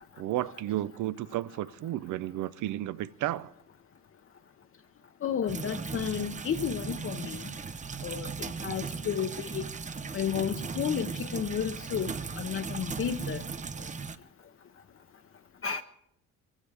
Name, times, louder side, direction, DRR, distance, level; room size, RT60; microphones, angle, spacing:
voice 1, 0.2-3.5 8.6-8.7, right 14 dB, 80° right, 0.6 m, -33 dB
voice 2, 5.2-7.4 8.0-8.3 8.6-9.6 10.1-13.4 15.6-15.8, left 8 dB, 45° left, 0.7 m, -32 dB
sound 1, 5.5-14.2, right 5 dB, 25° right, 0.6 m, -37 dB
23.0 x 15.0 x 3.4 m
cardioid pair, 90°, 30 cm